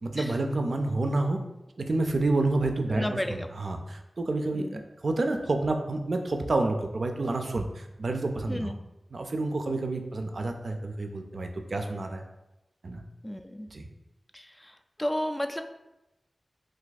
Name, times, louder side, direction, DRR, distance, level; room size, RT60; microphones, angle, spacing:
voice 1, 0.0-1.4 1.8-8.7 9.1-12.2 12.8-13.0 13.7-13.9, right 2 dB, 70° right, 5 dB, 0.4 m, -29 dB
voice 2, 2.9-3.5 4.5-4.8 8.5-8.8 13.2-13.7 14.3-15.6, equal, 15° left, 7 dB, 0.3 m, -33 dB
2.5 x 2.3 x 4.0 m, 0.95 s
cardioid pair, 40°, 0 cm